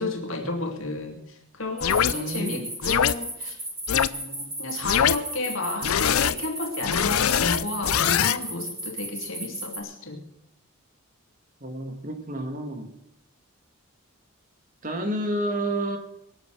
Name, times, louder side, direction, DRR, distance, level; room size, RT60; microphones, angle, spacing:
voice 1, 0.0-3.6 3.9-10.2, left 2 dB, 65° left, 3 dB, 2.6 m, -32 dB
sound 1, 1.8-2.1 2.8-3.1 3.9-4.1 4.8-5.2 5.8-6.3 6.8-8.4, left 9 dB, 85° left, 0.5 m, -22 dB
sound 2, 1.8-9.8, right 1 dB, 10° right, 3.4 m, -34 dB
voice 2, 2.1-2.7 11.6-12.9 14.8-16.0, right 1 dB, 40° right, 5 dB, 2.0 m, -30 dB
23.5 x 8.1 x 6.3 m, 0.81 s
head